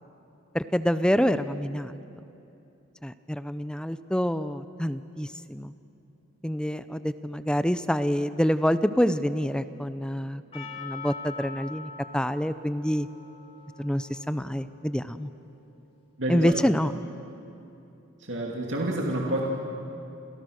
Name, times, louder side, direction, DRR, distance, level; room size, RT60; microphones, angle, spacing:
voice 1, 0.5-2.0 3.0-5.7 6.4-13.1 13.8-15.3 16.3-16.9, equal, 5° left, 12 dB, 0.6 m, -27 dB
Percussion, 10.5-15.1, left 5 dB, 30° left, 3.0 m, -43 dB
voice 2, 16.2-16.5 18.2-19.4, right 1 dB, 60° right, -2 dB, 2.6 m, -28 dB
29.5 x 28.0 x 6.5 m, 2.8 s
head